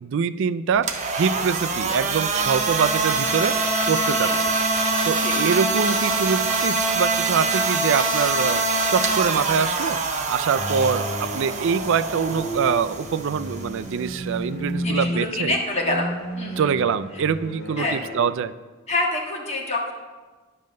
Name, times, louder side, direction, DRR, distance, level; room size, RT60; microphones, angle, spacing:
voice 1, 0.0-3.6 3.9-4.3 5.1-8.6 8.9-10.0 10.3-15.5 16.6-18.5, right 6 dB, 60° right, 13 dB, 0.4 m, -24 dB
sound 1, 0.7-14.8, right 3 dB, 35° right, 0.9 m, -24 dB
sound 2, 10.5-18.3, equal, 50° left, 1.7 m, -32 dB
voice 2, 14.8-16.1 16.4-16.7 17.1-17.2 17.8-18.0 18.9-19.9, left 2 dB, 30° left, 0 dB, 1.5 m, -26 dB
10.5 x 5.5 x 6.5 m, 1.3 s
head